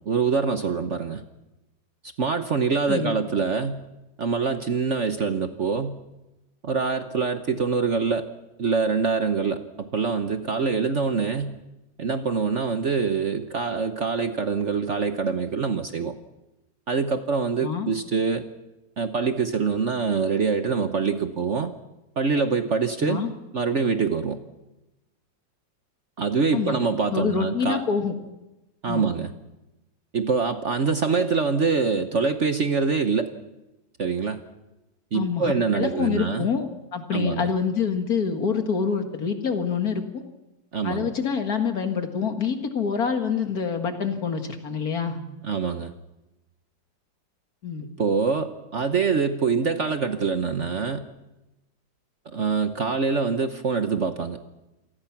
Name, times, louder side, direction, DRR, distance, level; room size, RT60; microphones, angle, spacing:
voice 1, 0.1-1.2 2.2-3.8 4.2-6.0 6.6-8.3 8.6-11.6 12.0-16.1 16.9-18.5 19.0-21.7 22.2-23.2 23.5-24.4 26.2-27.8 28.8-29.3 30.1-33.3 34.0-34.4 35.1-36.5 37.1-37.5 40.7-41.1 45.4-45.9 48.0-51.0 52.3-54.4, right 5 dB, 45° right, 8 dB, 1.2 m, -25 dB
voice 2, 27.1-28.1 28.9-29.1 35.1-36.7 36.9-40.2 40.8-45.2 47.6-47.9, left 6 dB, 55° left, 6 dB, 2.3 m, -26 dB
27.0 x 19.0 x 6.0 m, 0.99 s
omnidirectional pair, 2.0 m